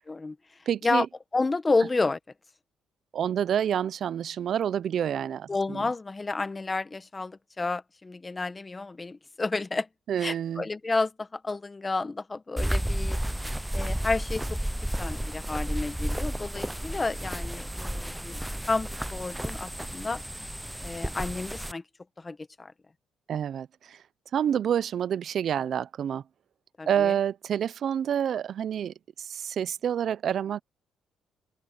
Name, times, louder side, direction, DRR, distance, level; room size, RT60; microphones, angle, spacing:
voice 1, 0.7-1.1 3.1-5.9 10.1-10.6 23.3-24.0 24.3-26.2 26.9-30.6, right 9 dB, 60° right, 0.5 m, -28 dB
voice 2, 1.3-2.2 5.5-9.9 10.2-13.2 13.7-18.4 18.7-20.2 20.8-21.8 22.2-22.7 26.8-27.1, left 3 dB, 25° left, 1.1 m, -30 dB
sound 1, 12.6-21.7, right 1 dB, 5° right, 0.6 m, -32 dB
open air
cardioid pair, 90°, 0 cm